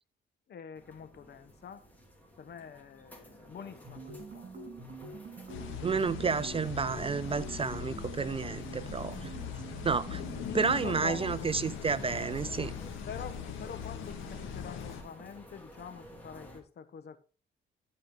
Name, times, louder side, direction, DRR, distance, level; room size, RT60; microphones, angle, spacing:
voice 1, 0.5-1.9 2.4-4.6 10.4-11.6 13.1-17.2, left 7 dB, 55° left, 1.2 m, -45 dB
sound 1, 0.8-16.6, equal, 10° left, 3.3 m, -54 dB
sound 2, 3.8-11.5, right 3 dB, 45° right, 3.9 m, -45 dB
sound 3, 5.5-15.0, left 7 dB, 90° left, 2.0 m, -41 dB
voice 2, 5.8-9.3 9.8-10.2 10.5-12.7, right 5 dB, 30° right, 0.4 m, -31 dB
13.5 x 5.0 x 3.8 m
cardioid pair, 90°, 20 cm